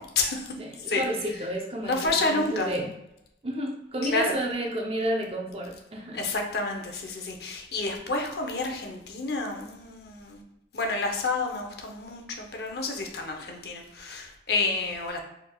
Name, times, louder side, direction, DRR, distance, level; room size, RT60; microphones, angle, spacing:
voice 1, 0.0-0.5 0.9-1.0 1.8-2.7 4.0-4.4 6.1-10.4 10.7-15.2, left 3 dB, 60° left, 3 dB, 0.7 m, -29 dB
voice 2, 0.6-2.9 3.4-6.2, equal, 35° right, 1 dB, 0.6 m, -31 dB
4.7 x 3.4 x 2.3 m, 0.84 s
head